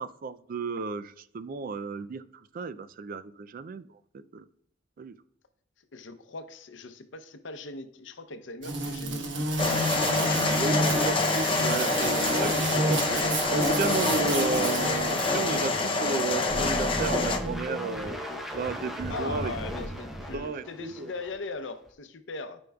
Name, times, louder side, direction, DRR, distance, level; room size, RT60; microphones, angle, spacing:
voice 1, 0.0-2.2 2.5-4.0 4.3-4.4 5.0-5.1 10.5-18.2 18.5-19.5 20.3-21.1, right 4 dB, 45° right, 14 dB, 0.4 m, -33 dB
voice 2, 5.9-9.6 19.1-22.6, left 3 dB, 75° left, 9 dB, 0.7 m, -40 dB
sound 1, 8.6-15.8, right 1 dB, 70° right, 1.1 m, -29 dB
sound 2, 9.6-17.4, left 3 dB, 30° left, 0.6 m, -27 dB
sound 3, 16.5-21.4 21.9-22.0, equal, ahead, 0.8 m, -35 dB
12.5 x 5.3 x 2.3 m, 0.70 s
head